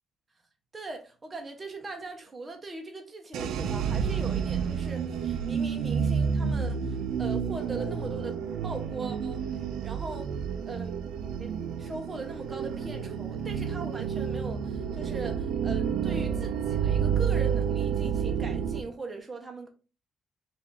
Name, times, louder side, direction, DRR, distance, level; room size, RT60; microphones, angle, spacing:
voice 1, 0.7-9.4 9.8-10.3 10.7-10.9 11.4-19.7, right 3 dB, 25° right, 0.8 m, -40 dB
sound 1, 3.3-18.8, right 7 dB, 75° right, 0.4 m, -30 dB
4.2 x 2.5 x 3.6 m
cardioid pair, 105°, 0 cm